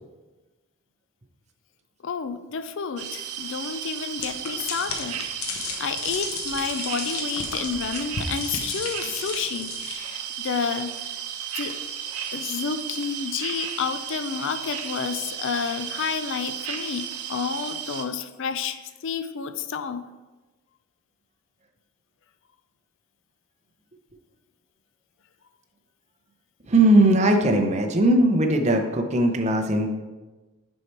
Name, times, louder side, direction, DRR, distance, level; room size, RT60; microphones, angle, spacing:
voice 1, 2.0-5.5 5.8-10.9 11.5-11.8 12.3-20.0, left 6 dB, 55° left, 10 dB, 0.4 m, -30 dB
sound 1, 3.0-18.1, right 8 dB, 90° right, 0.7 m, -34 dB
sound 2, 4.2-10.0, left 5 dB, 70° left, 0.8 m, -34 dB
voice 2, 26.7-29.9, right 1 dB, 30° right, 4 dB, 0.7 m, -19 dB
6.5 x 5.5 x 4.4 m, 1.2 s
head